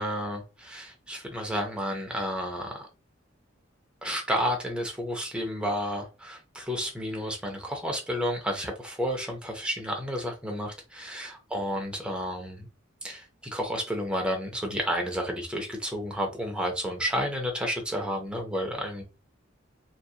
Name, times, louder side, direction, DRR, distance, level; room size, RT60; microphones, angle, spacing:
voice 1, 0.0-2.9 4.0-12.7 13.0-13.3 13.5-19.0, equal, 5° right, 2 dB, 0.5 m, -31 dB
2.7 x 2.4 x 2.3 m, 0.31 s
head